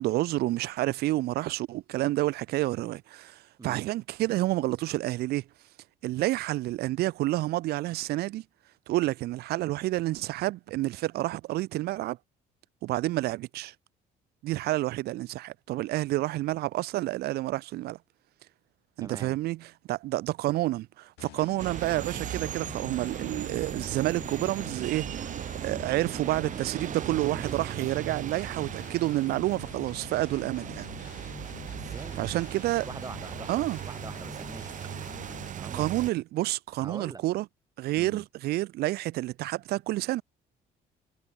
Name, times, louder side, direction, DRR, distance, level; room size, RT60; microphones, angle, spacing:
voice 1, 0.0-5.4 6.0-8.4 8.9-12.2 12.8-13.7 14.4-18.0 19.0-25.0 25.6-30.9 32.2-32.9 33.5-33.8 35.7-37.5 37.8-40.2, right 17 dB, 70° right, 0.5 m, -29 dB
voice 2, 19.0-19.4 31.7-32.3 32.8-34.9 35.6-36.0 36.8-37.2 37.9-38.2, right 4 dB, 20° right, 2.3 m, -43 dB
sound 1, 21.2-35.5, left 17 dB, 80° left, 2.6 m, -47 dB
sound 2, 21.6-36.1, right 10 dB, 50° right, 1.3 m, -38 dB
cardioid pair, 110°, 17 cm